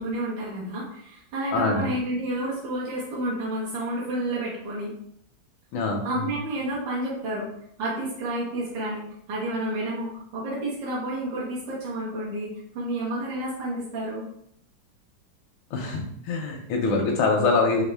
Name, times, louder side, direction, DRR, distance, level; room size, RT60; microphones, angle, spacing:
voice 1, 0.0-4.9 6.0-7.5 7.8-14.2, right 1 dB, 65° right, -7 dB, 1.7 m, -30 dB
voice 2, 1.5-1.9 5.7-6.1 15.7-17.8, left 3 dB, 85° left, 1 dB, 1.4 m, -24 dB
4.3 x 2.5 x 3.3 m, 0.70 s
omnidirectional pair, 2.2 m